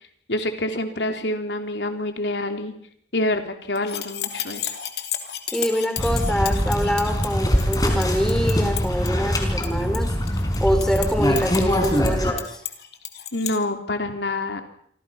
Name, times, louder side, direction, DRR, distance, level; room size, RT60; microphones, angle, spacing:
voice 1, 0.3-2.7 3.1-4.7 13.3-14.6, left 1 dB, 80° left, 5 dB, 3.6 m, -27 dB
sound 1, 3.8-13.6, left 11 dB, 65° left, 3.0 m, -33 dB
voice 2, 5.5-10.1 10.6-12.6, equal, 5° left, 4 dB, 4.6 m, -25 dB
sound 2, 6.0-12.3, equal, 20° left, 4.6 m, -23 dB
28.5 x 25.5 x 5.8 m, 0.65 s
head